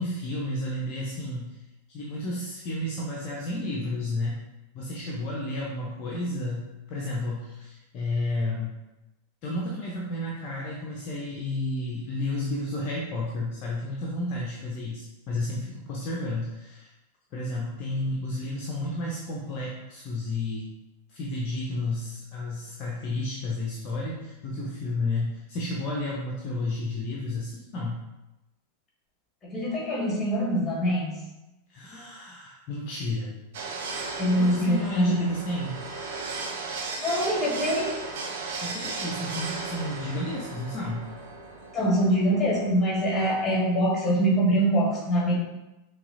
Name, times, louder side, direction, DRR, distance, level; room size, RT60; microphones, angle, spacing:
voice 1, 0.0-1.6 1.9-4.4 4.7-8.7 9.4-16.9 17.3-20.7 21.1-28.0 31.7-33.3 34.4-35.8 38.6-41.1, left 2 dB, 40° left, -3 dB, 0.6 m, -31 dB
voice 2, 29.5-31.2 34.2-35.1 37.0-37.9 41.7-45.3, equal, 15° left, -4 dB, 1.4 m, -24 dB
sound 1, 33.5-43.6, right 4 dB, 55° right, 0.5 m, -36 dB
5.5 x 2.3 x 2.5 m, 0.99 s
figure-of-eight pair, 90°, 0 cm